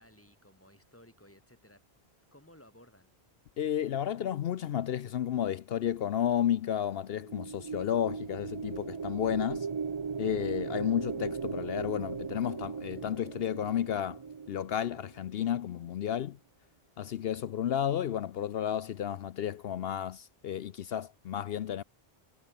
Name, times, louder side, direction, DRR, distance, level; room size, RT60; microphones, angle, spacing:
voice 1, 0.0-1.8 2.3-3.1, left 1 dB, 10° left, 3.5 m, -58 dB
voice 2, 3.6-9.7 10.2-14.2 14.5-16.4 17.0-21.8, left 10 dB, 65° left, 0.8 m, -32 dB
sound 1, 7.1-15.5, right 5 dB, 35° right, 0.5 m, -38 dB
omnidirectional pair, 1.1 m